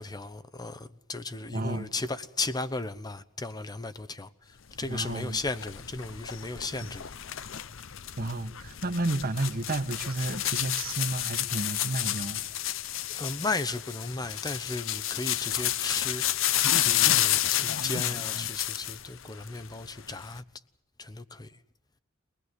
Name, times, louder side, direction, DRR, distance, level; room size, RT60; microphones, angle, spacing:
voice 1, 0.0-7.0 13.1-20.4 21.0-21.6, left 3 dB, 20° left, 0.8 m, -35 dB
voice 2, 1.5-1.9 4.9-5.4 8.2-12.4, right 2 dB, 45° right, 1.4 m, -31 dB
sound 1, 4.8-19.1 19.4-20.4, left 12 dB, 70° left, 0.8 m, -30 dB
23.0 x 20.0 x 8.1 m
head